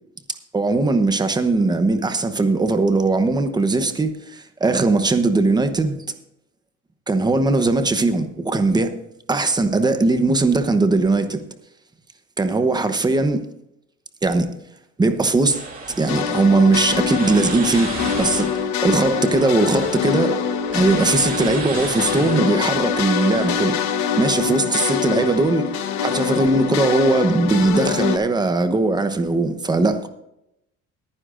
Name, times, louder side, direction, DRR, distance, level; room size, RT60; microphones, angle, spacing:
voice 1, 0.5-5.9 7.1-8.9 9.3-11.4 12.4-13.4 14.2-14.5 15.0-15.6 16.0-18.5 18.8-20.4 20.7-30.1, right 3 dB, 15° right, 0.9 m, -19 dB
sound 1, 15.5-23.7, right 3 dB, 30° right, 2.3 m, -34 dB
sound 2, 16.1-28.2, left 7 dB, 70° left, 1.2 m, -24 dB
21.0 x 9.9 x 2.6 m
cardioid pair, 145°, 29 cm